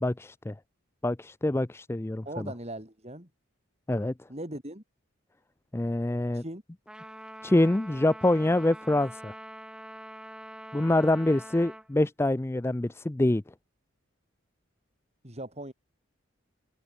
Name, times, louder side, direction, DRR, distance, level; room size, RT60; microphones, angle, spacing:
voice 1, 0.0-0.5 1.0-2.2 3.9-4.1 5.7-6.4 7.4-9.3 10.7-13.4, left 1 dB, 10° left, 0.4 m, -25 dB
voice 2, 2.3-3.3 4.3-4.8 6.3-6.6 15.2-15.7, right 1 dB, 30° right, 5.7 m, -39 dB
Trumpet, 6.9-11.9, right 1 dB, 5° right, 3.9 m, -44 dB
head